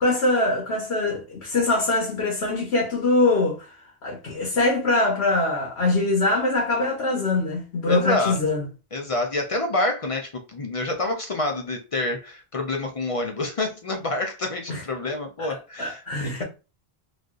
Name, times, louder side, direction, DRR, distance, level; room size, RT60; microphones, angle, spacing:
voice 1, 0.0-3.7 4.0-8.7 14.7-14.8 15.4-15.5 15.8-16.4, left 2 dB, 75° left, 1.1 m, -23 dB
voice 2, 7.9-8.4 8.9-16.4, left 2 dB, 45° left, 0.5 m, -27 dB
3.8 x 2.5 x 2.4 m
omnidirectional pair, 1.1 m